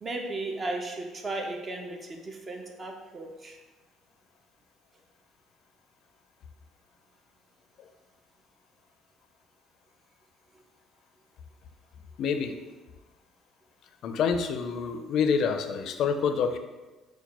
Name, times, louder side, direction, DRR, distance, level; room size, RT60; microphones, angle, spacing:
voice 1, 0.0-3.6, right 2 dB, 30° right, 3 dB, 0.4 m, -35 dB
voice 2, 12.2-12.6 14.0-16.6, left 6 dB, 60° left, 7 dB, 0.4 m, -27 dB
4.5 x 2.2 x 4.1 m, 1.2 s
cardioid pair, 125°, 0 cm